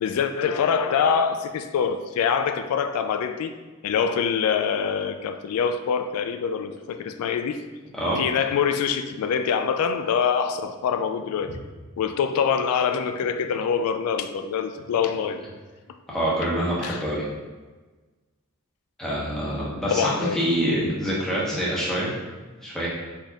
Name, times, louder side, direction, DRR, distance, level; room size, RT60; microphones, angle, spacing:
voice 1, 0.0-3.5 3.8-7.6 8.2-11.5 12.0-15.4 16.8-17.0 19.9-20.4, left 6 dB, 85° left, 10 dB, 0.3 m, -25 dB
voice 2, 16.1-17.2 19.0-22.1 22.6-22.9, equal, ahead, -7 dB, 1.0 m, -26 dB
5.1 x 4.1 x 2.4 m, 1.3 s
head